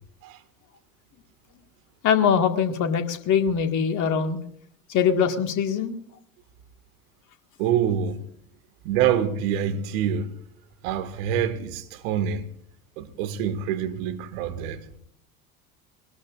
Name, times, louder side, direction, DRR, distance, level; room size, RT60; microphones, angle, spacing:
voice 1, 2.0-4.4 4.9-5.9, left 7 dB, 40° left, 1.8 m, -22 dB
voice 2, 7.6-8.2 8.8-10.3 10.8-12.5 13.0-14.8, right 9 dB, 60° right, 1.8 m, -26 dB
22.5 x 19.0 x 2.5 m
figure-of-eight pair, 75°, 45 cm